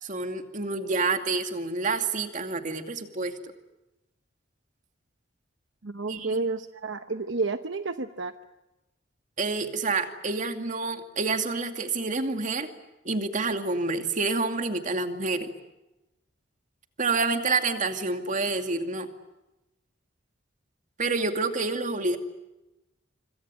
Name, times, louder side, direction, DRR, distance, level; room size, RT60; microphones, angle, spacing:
voice 1, 0.0-3.3 6.1-6.3 9.4-12.7 13.0-15.5 17.0-19.1 21.0-22.2, right 3 dB, 40° right, 6 dB, 2.5 m, -28 dB
voice 2, 5.8-8.3, right 3 dB, 70° right, 9 dB, 1.0 m, -30 dB
26.0 x 25.5 x 8.5 m, 0.98 s
head